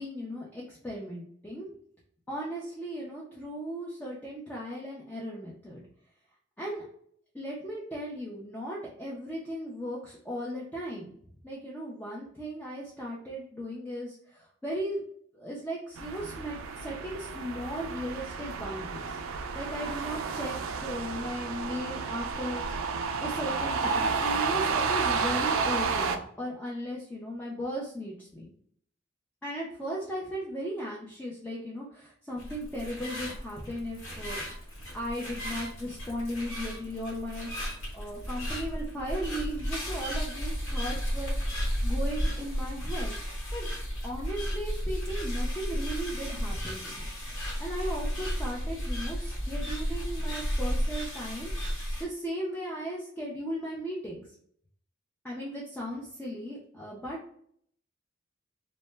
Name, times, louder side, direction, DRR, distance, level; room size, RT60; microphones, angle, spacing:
voice 1, 0.0-1.7 2.3-5.8 6.6-6.8 7.3-11.1 11.4-15.0 15.3-20.5 20.8-22.6 23.2-28.5 29.4-34.4 34.9-37.5 37.9-43.2 43.5-43.7 44.0-47.1 47.6-54.3 55.2-57.2, equal, 10° left, -5 dB, 0.4 m, -37 dB
sound 1, 16.0-26.2, right 5 dB, 80° right, 0.3 m, -31 dB
sound 2, 32.4-52.0, equal, 75° left, 1.1 m, -33 dB
2.1 x 2.0 x 3.1 m, 0.64 s
head